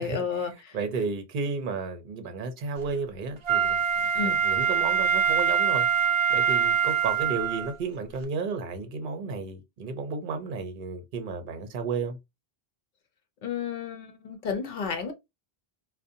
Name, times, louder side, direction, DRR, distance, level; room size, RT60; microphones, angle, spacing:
voice 1, 0.0-0.8 4.2-4.4 13.4-15.1, left 6 dB, 60° left, 0.7 m, -32 dB
voice 2, 0.7-3.8 4.2-5.9 6.3-12.2, right 4 dB, 60° right, 0.7 m, -32 dB
Wind instrument woodwind instrument, 3.4-7.7 8.2-8.3, right 8 dB, 45° right, 0.4 m, -24 dB
2.6 x 2.1 x 2.6 m
omnidirectional pair, 1.0 m